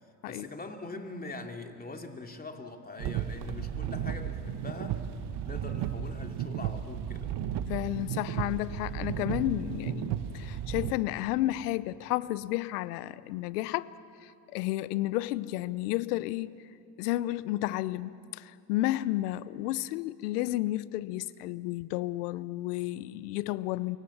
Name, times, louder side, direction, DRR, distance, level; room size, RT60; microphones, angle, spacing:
voice 1, 0.2-5.0 5.4-7.4, left 3 dB, 20° left, 2.9 m, -42 dB
sound 1, 3.0-10.9, right 9 dB, 60° right, 1.6 m, -34 dB
voice 2, 7.7-13.9 14.2-16.5 17.0-24.0, left 16 dB, 85° left, 0.9 m, -32 dB
29.5 x 24.0 x 7.3 m
supercardioid pair, 80°, 45 cm